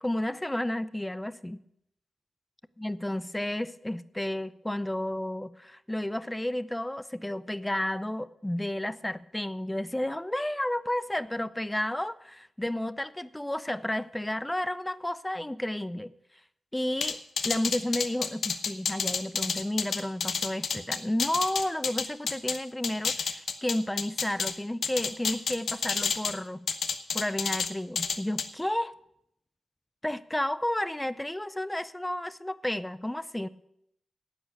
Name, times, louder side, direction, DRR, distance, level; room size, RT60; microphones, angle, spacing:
voice 1, 0.0-1.6 2.8-16.1 16.7-17.2 17.4-26.7 27.1-28.9 30.0-33.5, left 1 dB, 10° left, 16 dB, 0.5 m, -32 dB
sound 1, 17.0-22.6 22.8-24.5 24.8-26.3 26.7-27.7 27.9-28.4, left 6 dB, 75° left, 0.9 m, -29 dB
10.0 x 8.8 x 8.3 m, 0.77 s
wide cardioid pair, 115°, 0 cm